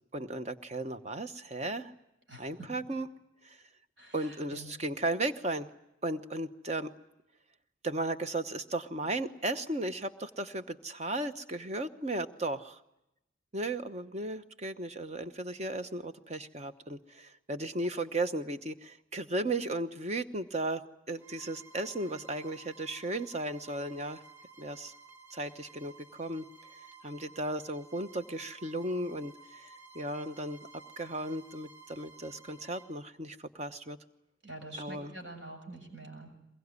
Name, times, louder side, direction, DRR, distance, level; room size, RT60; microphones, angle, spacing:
voice 1, 0.1-1.9 2.4-3.1 3.4-3.6 4.1-5.7 6.0-6.9 7.8-12.8 13.5-20.8 21.1-24.2 24.6-24.9 25.3-26.4 27.0-30.7 31.0-34.0 34.8-35.1, right 2 dB, 35° right, 9 dB, 1.0 m, -35 dB
voice 2, 2.3-2.7 4.0-4.7 34.4-36.3, right 2 dB, 65° right, 3 dB, 7.1 m, -46 dB
Bowed string instrument, 21.2-33.0, right 3 dB, 10° right, 4.2 m, -55 dB
22.5 x 22.0 x 9.7 m, 0.86 s
head